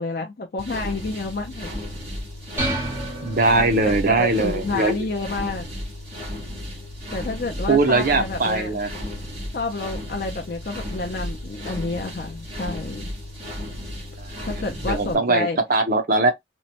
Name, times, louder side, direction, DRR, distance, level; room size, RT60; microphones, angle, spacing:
voice 1, 0.0-1.7 3.8-5.7 7.1-8.8 9.5-13.1 14.4-15.6, left 3 dB, 55° left, 0.5 m, -29 dB
sound 1, 0.6-15.1, left 1 dB, 35° right, 1.4 m, -34 dB
sound 2, 2.6-4.2, right 1 dB, 15° right, 1.1 m, -30 dB
voice 2, 3.2-5.0 7.7-8.9 14.2-14.5 14.9-16.3, right 3 dB, 50° right, 0.6 m, -20 dB
3.0 x 2.2 x 2.8 m
head